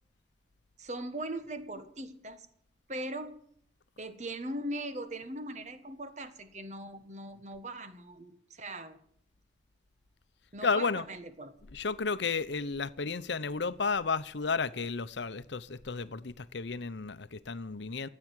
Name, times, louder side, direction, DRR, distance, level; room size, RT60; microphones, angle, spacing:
voice 1, 0.8-2.5 2.9-3.4 4.0-9.0 10.5-11.5, right 1 dB, 40° right, 1.3 m, -40 dB
voice 2, 10.6-11.1 11.6-18.1, left 4 dB, 75° left, 0.8 m, -32 dB
14.5 x 8.6 x 9.4 m
head